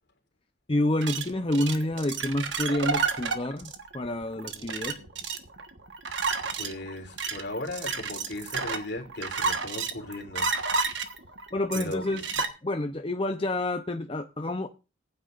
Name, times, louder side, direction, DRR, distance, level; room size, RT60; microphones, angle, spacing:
voice 1, 0.7-5.0 11.5-12.2 12.6-14.7, left 1 dB, 30° left, 0.7 m, -28 dB
sound 1, 1.0-12.5, right 5 dB, 70° right, 1.4 m, -31 dB
voice 2, 4.5-5.2 6.6-10.5 11.7-12.2, left 2 dB, 65° left, 3.5 m, -37 dB
19.5 x 9.3 x 2.5 m
head